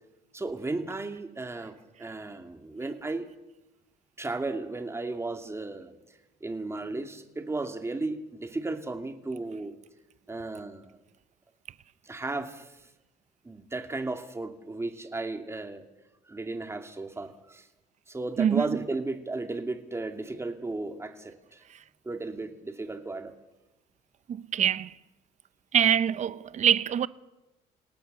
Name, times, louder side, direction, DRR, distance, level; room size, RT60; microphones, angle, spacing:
voice 1, 0.3-3.3 4.2-5.9 6.4-9.7 10.3-11.0 12.1-12.7 13.4-15.8 16.3-17.7 18.1-21.6 22.0-23.3, right 2 dB, 15° right, 2.5 m, -34 dB
voice 2, 24.3-24.9 25.7-27.1, right 9 dB, 45° right, 0.8 m, -24 dB
27.5 x 18.0 x 6.9 m
cardioid pair, 110°, 17 cm